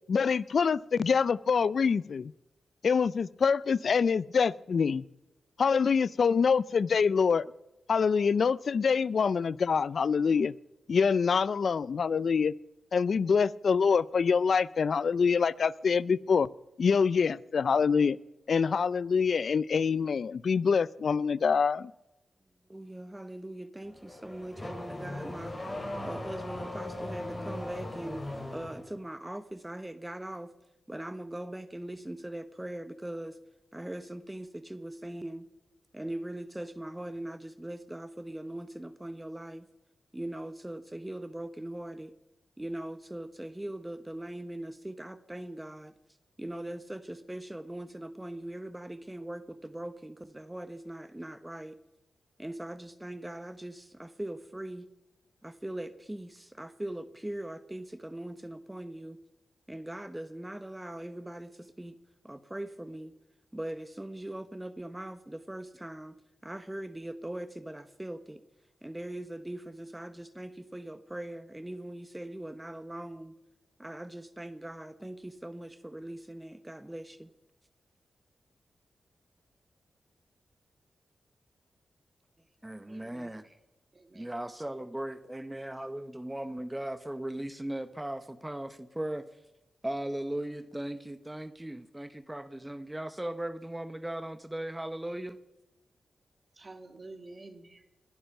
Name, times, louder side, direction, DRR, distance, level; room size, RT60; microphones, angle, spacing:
voice 1, 0.1-2.3 2.8-5.0 5.6-7.4 7.9-10.5 10.9-12.5 12.9-16.5 16.8-18.2 18.5-21.9, left 5 dB, 70° left, 0.4 m, -25 dB
voice 2, 22.7-25.5 26.0-28.3 28.5-30.5 30.9-33.3 33.7-35.5 35.9-39.7 40.1-42.1 42.6-45.9 46.4-51.8 52.4-54.9 55.4-59.2 59.7-61.9 62.2-63.1 63.5-66.2 66.4-68.4 68.8-73.3 73.8-77.3 82.6-83.5 84.1-89.3 89.8-95.4, right 1 dB, 15° right, 1.0 m, -40 dB
Car / Accelerating revving vroom, 23.8-28.9, left 1 dB, 30° left, 6.6 m, -38 dB
voice 3, 82.9-83.4 83.9-84.3 96.6-97.8, right 2 dB, 40° right, 2.4 m, -49 dB
21.5 x 10.5 x 5.9 m
cardioid pair, 45°, 0 cm